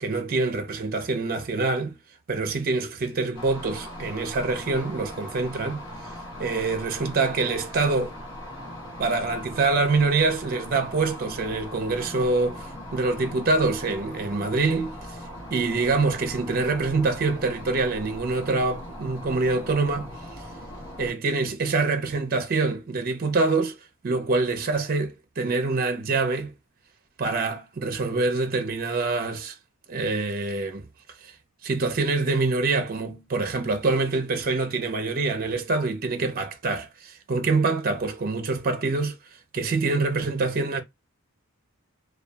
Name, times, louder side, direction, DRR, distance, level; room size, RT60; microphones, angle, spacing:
voice 1, 0.0-2.0 2.3-5.8 6.4-8.1 9.0-15.2 15.5-20.1 21.0-23.8 24.0-26.5 27.2-29.6 29.9-30.8 31.2-31.3 31.6-39.2 39.5-40.8, right 3 dB, 40° right, 0.5 m, -25 dB
sound 1, 3.3-21.1, left 1 dB, 55° left, 1.0 m, -40 dB
2.6 x 2.2 x 2.2 m
head